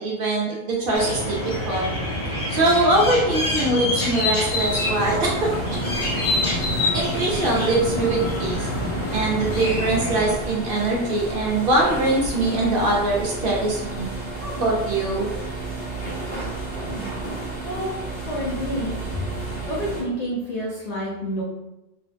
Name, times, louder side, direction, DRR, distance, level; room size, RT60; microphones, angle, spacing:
voice 1, 0.0-2.1 2.5-5.5 6.9-8.6 9.1-14.1 14.4-15.3, right 2 dB, 60° right, -3 dB, 0.6 m, -22 dB
sound 1, 0.9-10.4, left 1 dB, 80° left, 1.0 m, -26 dB
sound 2, 4.4-20.0, right 2 dB, 35° left, 1.2 m, -32 dB
voice 2, 18.3-19.0 19.7-21.4, equal, 60° left, -7 dB, 0.4 m, -28 dB
2.4 x 2.1 x 2.5 m, 0.94 s
omnidirectional pair, 1.2 m